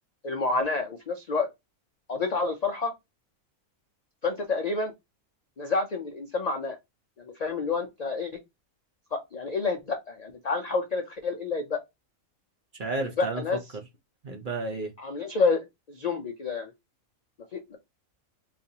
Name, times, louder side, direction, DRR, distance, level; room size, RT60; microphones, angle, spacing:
voice 1, 0.2-1.5 2.1-2.9 4.2-4.9 5.6-6.8 7.2-8.4 9.1-11.8 13.2-13.6 15.0-16.7 17.5-17.8, left 4 dB, 75° left, 0.3 m, -29 dB
voice 2, 12.7-13.8 14.2-14.9, right 3 dB, 50° right, 0.7 m, -32 dB
3.9 x 2.5 x 2.7 m
omnidirectional pair, 1.4 m